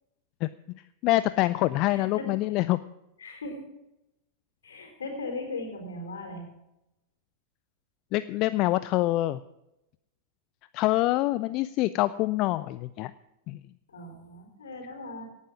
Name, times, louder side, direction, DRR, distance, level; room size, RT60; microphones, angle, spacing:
voice 1, 1.0-2.8 8.1-9.4 10.7-13.1 13.5-13.6, left 17 dB, 40° left, 15 dB, 0.4 m, -25 dB
voice 2, 1.9-2.3 3.2-3.6 4.6-6.4 13.9-15.2, left 2 dB, 70° left, 3 dB, 4.3 m, -38 dB
18.0 x 9.7 x 6.2 m, 0.89 s
figure-of-eight pair, 90°, 0 cm